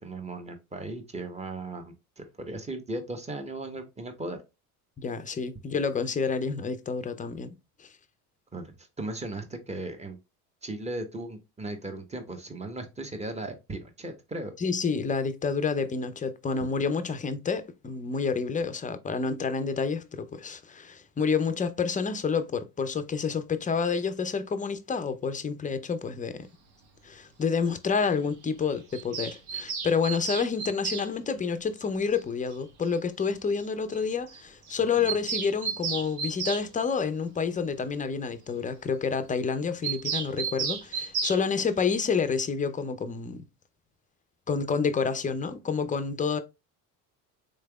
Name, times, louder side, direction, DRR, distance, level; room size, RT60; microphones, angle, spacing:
voice 1, 0.0-4.4 8.5-10.2 10.6-14.5 35.0-35.1, right 2 dB, 15° right, 1.0 m, -37 dB
voice 2, 5.0-7.5 7.8-7.9 14.6-26.5 27.0-43.4 44.5-46.4, left 5 dB, 20° left, 0.5 m, -29 dB
Bird vocalization bird call bird song, 28.9-31.1 32.5-32.6 32.9-33.0 33.2-33.3 33.6-33.7 33.9-34.0 34.3-34.4 34.7-36.7 39.8-41.4, right 6 dB, 60° right, 1.2 m, -32 dB
3.9 x 3.3 x 2.3 m
hypercardioid pair, 75°, 44 cm